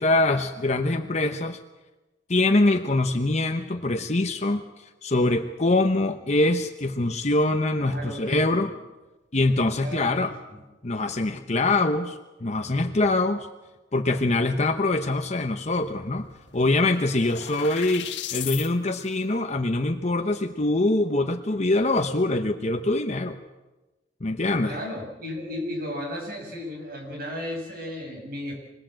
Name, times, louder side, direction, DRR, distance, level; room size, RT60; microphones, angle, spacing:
voice 1, 0.0-1.6 2.3-8.7 9.3-10.3 10.8-13.5 13.9-23.4 24.2-24.8, left 2 dB, 35° left, 6 dB, 1.0 m, -24 dB
voice 2, 7.8-8.7 9.5-10.6 24.6-28.5, left 1 dB, 50° right, 1 dB, 7.3 m, -35 dB
sound 1, 15.8-15.9 16.2-18.7, left 10 dB, 70° left, 2.0 m, -36 dB
25.5 x 19.0 x 7.8 m, 1.1 s
head